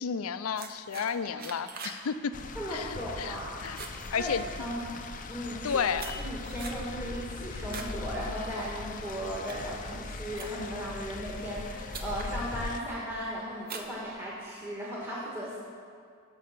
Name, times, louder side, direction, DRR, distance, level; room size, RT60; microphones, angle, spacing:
voice 1, 0.0-2.3 2.7-3.8 4.1-4.4 5.6-6.0, left 6 dB, 85° left, 12 dB, 0.5 m, -32 dB
sound 1, 0.6-2.0 2.3-2.7 3.1-3.4 3.6-4.8 5.5-8.0 8.4-8.7 9.2-10.8 11.5-11.6 11.9-12.3 12.8-13.2 13.6-14.6, right 4 dB, 45° right, 0.9 m, -44 dB
sound 2, 2.3-12.8, left 3 dB, 40° left, 0.5 m, -40 dB
voice 2, 2.5-3.6 4.2-4.8 5.3-5.8 6.1-15.6, equal, 10° right, -7 dB, 1.7 m, -36 dB
12.0 x 5.6 x 6.7 m, 2.2 s
head